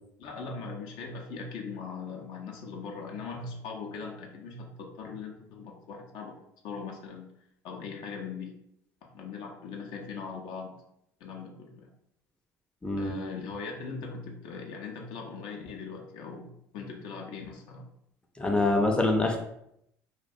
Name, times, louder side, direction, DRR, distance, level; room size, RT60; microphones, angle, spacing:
voice 1, 0.2-6.4 6.6-7.3 7.6-8.6 9.0-10.7 11.2-11.9 13.0-17.9, left 5 dB, 65° left, 1 dB, 0.5 m, -40 dB
voice 2, 12.8-13.1 18.4-19.4, left 2 dB, 10° left, 2 dB, 0.4 m, -25 dB
2.3 x 2.1 x 2.6 m, 0.76 s
hypercardioid pair, 60°, 9 cm